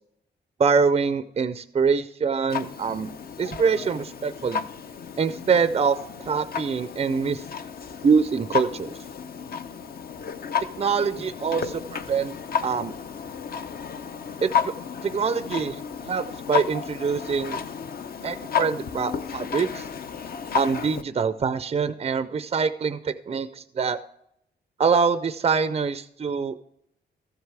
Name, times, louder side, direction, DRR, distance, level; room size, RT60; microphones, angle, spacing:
voice 1, 0.6-3.1 3.4-4.7 5.2-7.4 8.0-8.9 10.8-11.6 12.1-12.3 12.6-12.9 14.4-14.7 15.0-17.6 18.2-19.9 20.5-24.0 24.8-26.6, right 5 dB, 35° right, 12 dB, 0.4 m, -24 dB
Clock, 2.5-21.0, left 6 dB, 55° left, 0.7 m, -32 dB
14.0 x 8.0 x 3.4 m, 0.76 s
cardioid pair, 115°, 18 cm